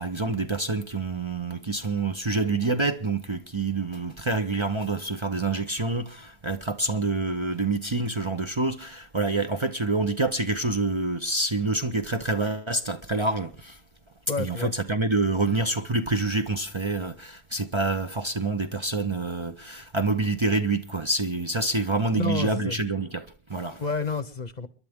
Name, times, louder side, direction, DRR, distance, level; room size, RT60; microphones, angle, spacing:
voice 1, 0.0-13.8 14.4-23.8, right 3 dB, 30° right, 0.7 m, -27 dB
voice 2, 14.3-14.7 22.1-22.8 23.8-24.7, left 4 dB, 45° left, 0.9 m, -30 dB
29.5 x 11.0 x 3.6 m
omnidirectional pair, 1.1 m